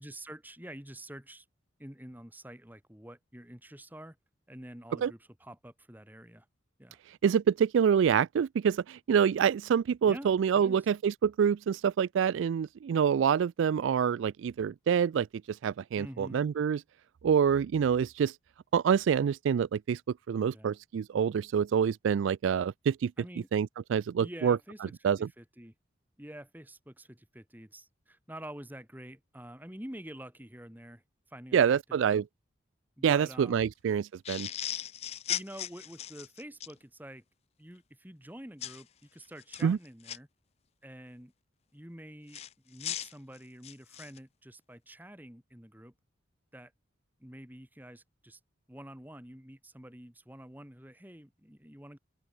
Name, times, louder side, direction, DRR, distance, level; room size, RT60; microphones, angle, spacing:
voice 1, 0.0-1.5 1.8-4.2 4.5-6.5 6.8-7.0 10.1-10.9 16.0-16.4 20.5-20.8 23.2-23.5 24.2-25.7 26.2-31.8 32.1-32.2 33.0-33.7 35.3-37.2 37.6-40.3 40.8-41.3 41.7-45.9 46.5-46.7 47.2-48.4 48.7-52.0, right 1 dB, 10° right, 2.0 m, -47 dB
voice 2, 7.1-16.8 17.2-18.4 18.7-20.0 20.3-23.1 23.5-24.6 25.0-25.3 31.5-32.2 33.0-34.5 39.6-39.8, right 7 dB, 75° right, 0.3 m, -26 dB
sound 1, 34.2-36.7 38.6-38.8 39.4-40.2 42.3-44.2, left 11 dB, 30° left, 0.3 m, -37 dB
open air
head